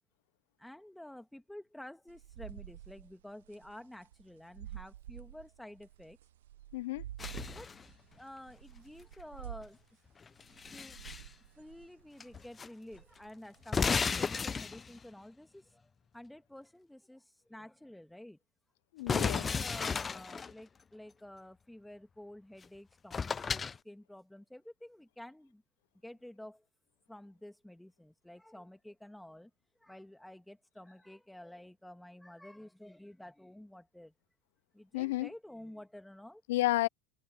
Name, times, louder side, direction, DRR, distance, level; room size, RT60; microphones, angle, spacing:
voice 1, 0.6-6.2 7.5-7.7 8.1-9.8 10.7-11.0 11.6-18.4 19.1-25.6 26.0-26.6 27.1-29.5 29.8-34.1 34.7-36.4, left 1 dB, 5° left, 1.7 m, -51 dB
sound 1, 2.1-9.9 10.4-12.6 12.9-14.1, right 12 dB, 80° right, 0.7 m, -49 dB
voice 2, 6.7-7.0 18.9-19.5 34.9-35.3 36.5-36.9, left 18 dB, 75° left, 0.5 m, -31 dB
sound 2, 7.2-7.8 10.2-11.3 12.2-12.7 12.9-13.0 13.6-15.0 19.1-20.5 22.6-22.7 23.1-23.8, left 5 dB, 25° left, 0.6 m, -34 dB
hypercardioid pair, 90°, 0 cm